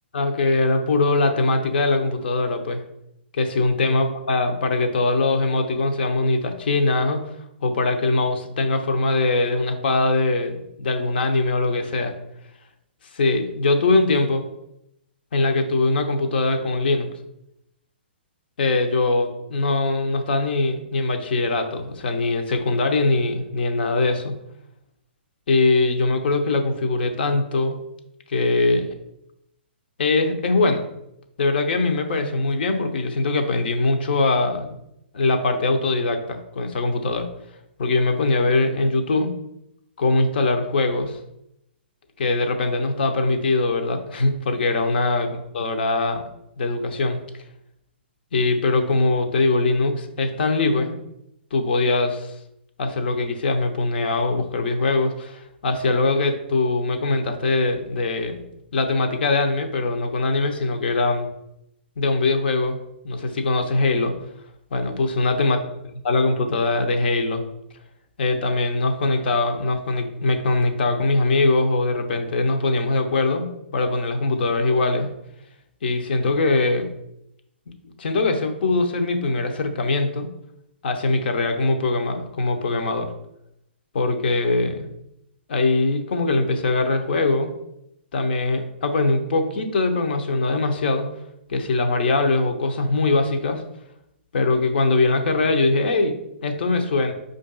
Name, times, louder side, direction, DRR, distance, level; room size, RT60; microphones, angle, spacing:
voice 1, 0.1-2.8 3.3-7.3 7.6-12.1 13.1-14.5 15.3-17.1 18.6-24.3 25.5-27.8 28.3-29.0 30.0-30.8 31.4-34.8 35.1-37.3 37.8-39.4 40.0-41.2 42.2-46.3 46.6-47.2 48.3-51.0 51.5-52.4 52.8-58.4 58.7-61.3 62.0-62.8 63.0-64.2 64.7-65.6 66.0-67.4 68.2-75.1 75.8-76.9 78.0-80.3 80.8-83.1 83.9-84.9 85.5-87.5 88.1-91.1 91.5-93.6 94.3-97.1, left 3 dB, 60° left, 5 dB, 0.7 m, -22 dB
5.2 x 2.6 x 3.8 m, 0.81 s
figure-of-eight pair, 125°, 6 cm